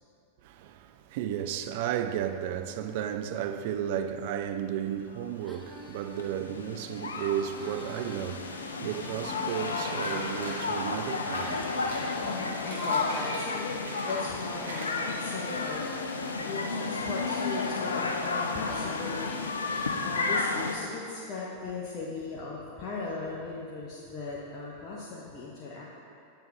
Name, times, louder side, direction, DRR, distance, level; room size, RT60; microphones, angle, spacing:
voice 1, 0.4-11.8, right 9 dB, 50° right, 0.3 m, -33 dB
Female singing, 5.4-14.3 14.9-17.9 18.4-20.7, equal, 5° left, 0.6 m, -48 dB
sound 1, 5.6-20.7, left 4 dB, 70° left, 0.4 m, -32 dB
sound 2, 10.0-10.6 11.2-12.1 12.5-14.4 14.6-15.6 15.9-16.0 16.4-16.5, right 1 dB, 70° right, 1.1 m, -44 dB
voice 2, 12.2-15.8 16.4-19.5 20.0-25.8, left 3 dB, 30° left, 0.9 m, -38 dB
8.3 x 6.7 x 3.1 m
figure-of-eight pair, 90°, 0 cm